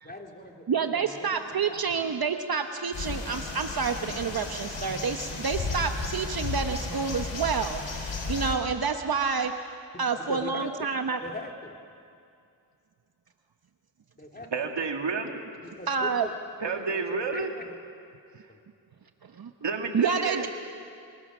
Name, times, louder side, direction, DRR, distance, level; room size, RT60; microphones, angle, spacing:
voice 1, 0.0-1.8 9.9-10.9 11.2-11.8 14.2-14.5 15.8-16.3 16.6-17.7 18.5-18.6, left 1 dB, 20° left, 2 dB, 2.4 m, -41 dB
voice 2, 0.7-9.5 10.0-11.2 15.9-16.3 19.3-19.5 19.9-20.5, right 5 dB, 55° right, 7 dB, 1.0 m, -28 dB
sound 1, 2.9-8.6, left 3 dB, 80° left, 3.6 m, -34 dB
voice 3, 14.5-15.4 16.6-17.5 19.6-20.5, right 4 dB, 70° right, 4 dB, 2.2 m, -30 dB
27.5 x 23.0 x 6.1 m, 2.4 s
wide cardioid pair, 75°, 44 cm